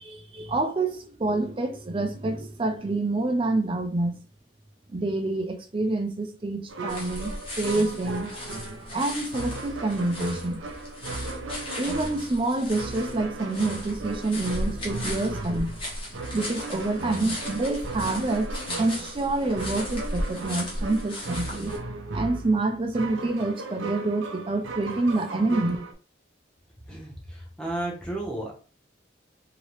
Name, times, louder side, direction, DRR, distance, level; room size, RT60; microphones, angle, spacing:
voice 1, 0.0-4.2 4.9-8.3 8.9-10.6 11.8-15.8 16.3-21.7 22.1-25.8, right 2 dB, 25° right, 0.4 m, -27 dB
sound 1, 6.7-25.9, right 3 dB, 90° right, 0.6 m, -37 dB
sound 2, 6.9-21.8, left 1 dB, 30° left, 1.1 m, -36 dB
voice 2, 26.9-28.5, right 1 dB, 5° left, 0.9 m, -33 dB
2.9 x 2.8 x 3.0 m
head